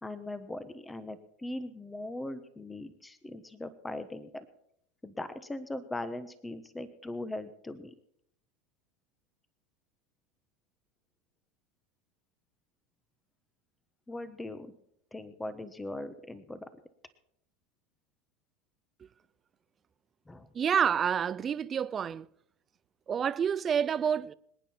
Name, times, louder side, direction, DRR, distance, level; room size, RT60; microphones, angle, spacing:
voice 1, 0.0-4.4 5.0-7.9 14.1-14.7 15.1-16.7 20.3-20.5, left 1 dB, 10° left, 1.2 m, -40 dB
voice 2, 20.5-22.3 23.1-24.3, right 8 dB, 25° right, 0.5 m, -28 dB
26.0 x 9.1 x 4.4 m
supercardioid pair, 120°, 0 cm